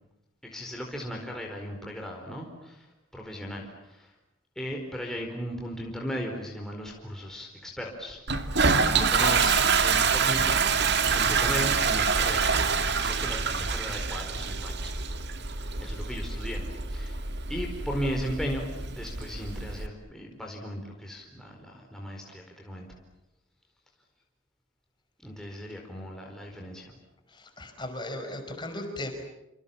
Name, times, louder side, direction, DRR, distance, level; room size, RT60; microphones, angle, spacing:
voice 1, 0.4-2.9 3.1-4.1 4.6-8.3 8.7-12.5 13.0-14.9 15.8-17.2 17.5-18.6 18.9-22.9 25.2-26.9, equal, ahead, -1 dB, 4.6 m, -36 dB
Toilet flush, 8.3-19.9, right 5 dB, 55° right, 2.2 m, -26 dB
voice 2, 11.2-11.6 25.4-25.6 27.3-29.1, left 1 dB, 20° left, 5 dB, 5.2 m, -37 dB
29.5 x 27.5 x 7.4 m, 0.93 s
head